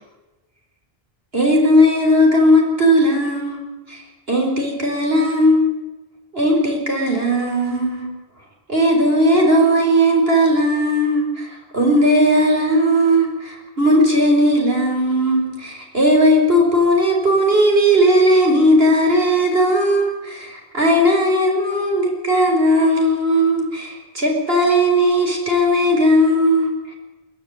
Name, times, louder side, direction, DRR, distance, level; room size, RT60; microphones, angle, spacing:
voice 1, 1.3-3.6 3.9-4.0 4.3-5.7 6.3-8.1 8.7-26.9, equal, 75° right, 1 dB, 5.0 m, -17 dB
23.0 x 16.0 x 7.9 m, 1.1 s
omnidirectional pair, 1.0 m